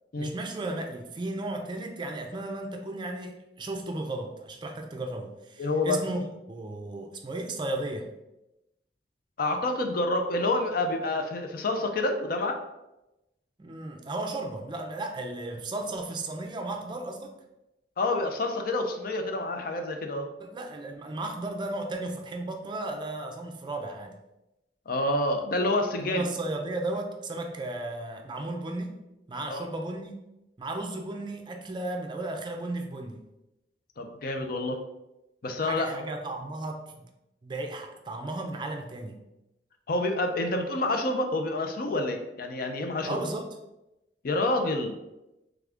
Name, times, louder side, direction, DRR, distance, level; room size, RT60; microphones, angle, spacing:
voice 1, 0.2-8.1 13.6-17.3 20.4-24.2 26.0-29.0 29.3-30.2 30.6-33.2 35.6-37.0 37.4-39.2 43.1-43.5, right 2 dB, 25° right, 4 dB, 0.4 m, -35 dB
voice 2, 5.6-6.0 9.4-12.6 18.0-20.3 24.9-26.3 29.5-29.6 34.0-34.8 35.4-36.1 39.9-43.2 44.2-44.9, left 2 dB, 55° left, 5 dB, 0.5 m, -28 dB
3.7 x 3.5 x 3.5 m, 0.95 s
head